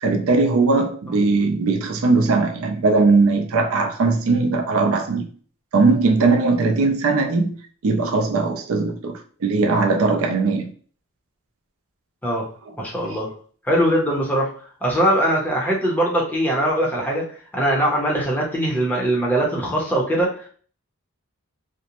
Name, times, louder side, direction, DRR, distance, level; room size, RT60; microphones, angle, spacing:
voice 1, 0.0-5.3 5.7-7.6 7.8-10.7, right 3 dB, 75° right, 0.4 m, -19 dB
voice 2, 12.8-13.3 13.6-14.5 14.8-17.3 17.5-20.5, right 1 dB, 10° left, 0.6 m, -21 dB
2.5 x 2.0 x 2.9 m
head